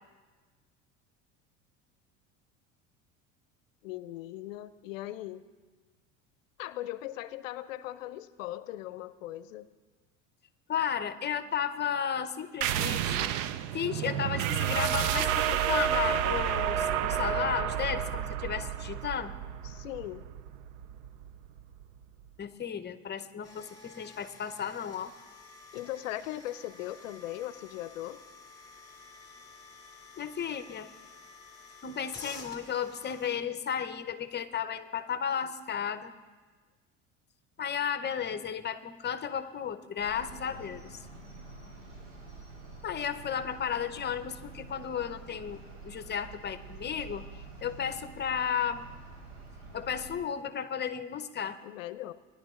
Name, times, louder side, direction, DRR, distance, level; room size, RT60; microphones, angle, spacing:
voice 1, 3.8-5.5 6.6-9.7 19.6-20.2 25.7-28.2 51.6-52.1, left 14 dB, 80° left, 15 dB, 0.6 m, -39 dB
voice 2, 10.7-13.3 13.7-19.3 22.4-25.1 30.2-30.9 31.8-36.1 37.6-41.0 42.8-48.8 49.7-51.6, left 8 dB, 25° left, 10 dB, 0.8 m, -34 dB
sound 1, 12.6-21.8, right 10 dB, 65° right, 0.6 m, -30 dB
sound 2, 23.4-33.4, left 3 dB, 10° left, 2.6 m, -51 dB
sound 3, 40.0-50.2, right 3 dB, 85° right, 3.7 m, -48 dB
20.5 x 11.0 x 2.4 m, 1.3 s
hypercardioid pair, 80°, 38 cm